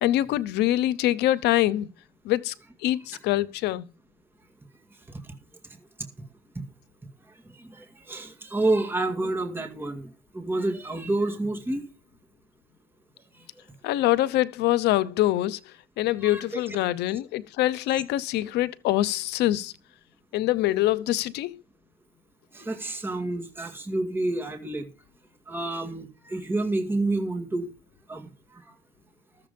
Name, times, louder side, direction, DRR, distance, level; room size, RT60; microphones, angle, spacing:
voice 1, 0.0-1.9 2.2-2.5 2.8-3.9 13.8-15.6 16.0-19.7 20.3-21.6, left 14 dB, 80° left, 0.8 m, -24 dB
voice 2, 7.6-10.1 10.3-11.9 16.2-16.8 22.5-24.9 25.5-27.7 28.1-28.3, right 2 dB, 15° right, 2.1 m, -29 dB
13.5 x 7.3 x 5.2 m
cardioid pair, 110°, 17 cm